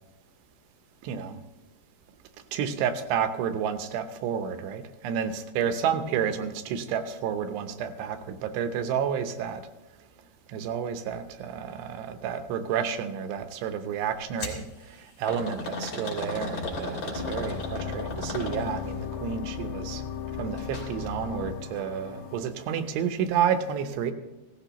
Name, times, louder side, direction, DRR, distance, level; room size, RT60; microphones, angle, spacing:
voice 1, 1.0-1.4 2.5-9.6 10.5-14.6 15.2-20.0 20.4-24.1, right 8 dB, 80° right, 2.9 m, -30 dB
sound 1, 14.4-14.6 15.3-19.0 20.6-20.9 21.2-21.3 22.2-22.3, left 3 dB, 50° left, 4.1 m, -34 dB
sound 2, 17.2-22.4, left 7 dB, 75° left, 2.7 m, -36 dB
17.0 x 15.0 x 3.0 m
omnidirectional pair, 5.0 m